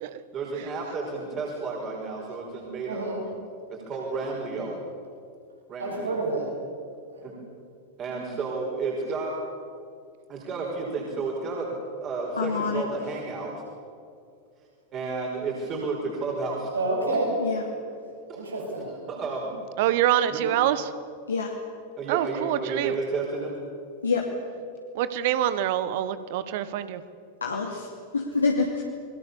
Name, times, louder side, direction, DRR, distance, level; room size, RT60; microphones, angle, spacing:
voice 1, 0.3-3.1 3.7-4.8 5.7-6.2 7.2-7.4 8.0-9.4 10.3-11.7 12.0-13.6 14.9-16.7 18.3-18.4 19.1-19.5 20.3-20.4 22.0-23.6, right 4 dB, 30° right, -2 dB, 5.6 m, -31 dB
voice 2, 2.9-3.2 5.8-6.5 7.1-7.2 16.7-17.3 18.3-18.9, right 2 dB, 75° right, -1 dB, 7.9 m, -28 dB
voice 3, 12.4-12.8 17.4-17.6 21.3-21.5 24.0-24.3 27.4-27.9 28.3-28.8, left 4 dB, 75° left, -1 dB, 2.7 m, -26 dB
voice 4, 19.8-20.8 22.1-22.9 24.9-27.0, right 12 dB, 50° right, 14 dB, 1.4 m, -25 dB
30.0 x 22.0 x 7.2 m, 2.4 s
figure-of-eight pair, 90°, 0 cm